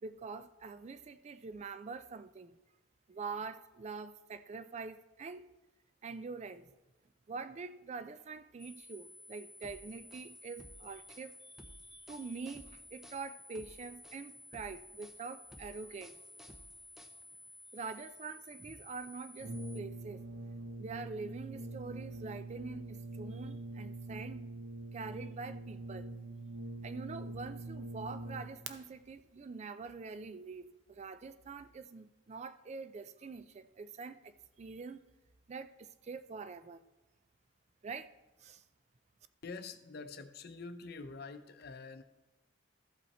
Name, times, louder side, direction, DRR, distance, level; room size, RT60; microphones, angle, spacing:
voice 1, 0.0-2.6 3.1-5.5 6.0-6.7 7.3-16.2 17.7-20.2 20.8-24.5 24.9-26.1 26.8-35.0 35.5-36.8 37.8-38.1 38.4-38.6, right 4 dB, 35° right, 0.4 m, -45 dB
sound 1, 8.6-19.8, left 1 dB, 30° left, 1.4 m, -55 dB
sound 2, 9.6-17.5, equal, ahead, 0.7 m, -57 dB
Brass instrument, 19.4-28.7, right 2 dB, 75° right, 0.7 m, -44 dB
voice 2, 39.4-42.0, left 4 dB, 55° left, 0.6 m, -46 dB
13.5 x 5.5 x 4.2 m
head